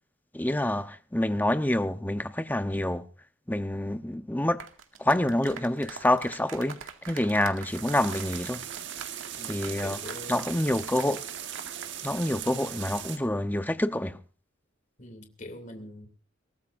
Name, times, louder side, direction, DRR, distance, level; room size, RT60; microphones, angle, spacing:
voice 1, 0.3-3.0 3.5-4.6 5.0-6.8 7.1-8.6 9.5-10.0 10.3-11.2 12.0-14.2, left 1 dB, 10° left, 0.9 m, -27 dB
sound 1, 4.5-12.0 12.2-12.4, right 6 dB, 85° right, 2.1 m, -44 dB
sound 2, 7.7-13.2, right 10 dB, 65° right, 1.5 m, -39 dB
voice 2, 9.4-10.5 15.0-16.1, left 1 dB, 40° left, 2.8 m, -43 dB
23.5 x 18.0 x 2.6 m
head